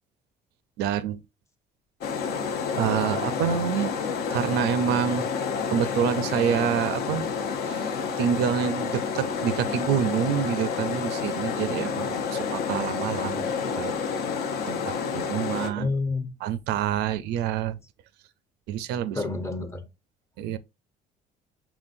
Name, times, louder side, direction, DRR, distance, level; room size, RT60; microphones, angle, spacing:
voice 1, 0.8-1.2 2.8-3.9 4.3-5.3 5.7-7.3 7.6-14.0 14.7-15.9 16.4-17.8 18.7-19.2 20.4-20.6, right 9 dB, 85° right, 0.4 m, -27 dB
sound 1, 2.0-15.7, left 6 dB, 65° left, 0.7 m, -29 dB
voice 2, 15.7-16.3 19.1-19.9, left 3 dB, 15° left, 0.7 m, -29 dB
4.4 x 3.8 x 2.5 m
cardioid pair, 110°, 17 cm